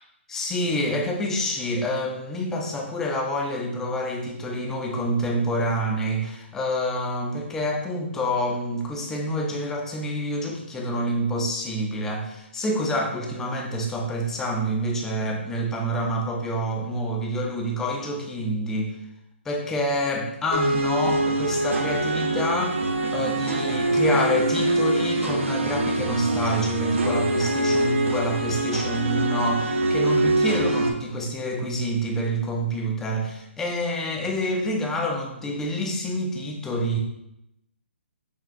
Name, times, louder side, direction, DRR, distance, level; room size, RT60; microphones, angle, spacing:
voice 1, 0.3-19.0 19.5-22.8 23.1-37.0, equal, 5° left, 1 dB, 0.3 m, -27 dB
sound 1, 20.5-30.9, right 2 dB, 75° right, 0.6 m, -24 dB
5.8 x 2.1 x 2.5 m, 0.86 s
hypercardioid pair, 160°, 7 cm